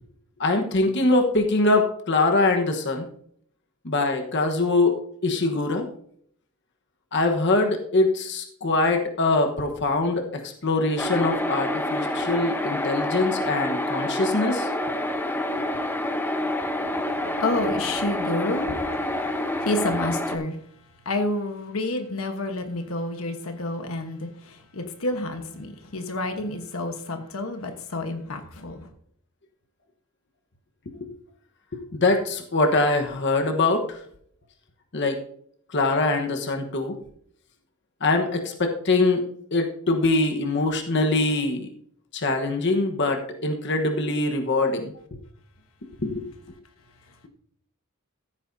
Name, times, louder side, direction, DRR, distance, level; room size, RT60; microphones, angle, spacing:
voice 1, 0.4-3.1 3.8-5.9 7.1-14.7 31.0-31.1 31.7-34.0 34.9-35.2 35.7-36.9 38.0-39.2 39.5-41.7 42.1-44.9 46.0-46.2, left 2 dB, 55° left, 1.2 m, -23 dB
sound 1, 11.0-20.4, left 1 dB, 10° left, 0.8 m, -27 dB
voice 2, 16.9-28.9 47.1-47.3, left 2 dB, 75° left, 1.2 m, -30 dB
14.5 x 8.9 x 2.7 m
head